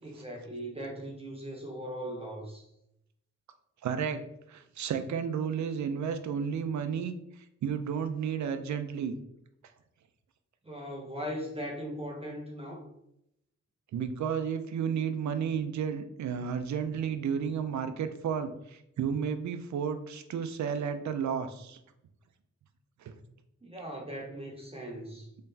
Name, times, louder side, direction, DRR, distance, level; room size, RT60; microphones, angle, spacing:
voice 1, 0.0-2.7 10.6-12.9 23.6-25.3, equal, 20° right, -1 dB, 0.8 m, -39 dB
voice 2, 3.8-4.2 4.5-7.1 7.6-9.2 13.9-21.8 23.0-23.1, right 7 dB, 70° right, 9 dB, 0.5 m, -32 dB
3.7 x 3.2 x 2.7 m, 0.79 s
cardioid pair, 70°, 30 cm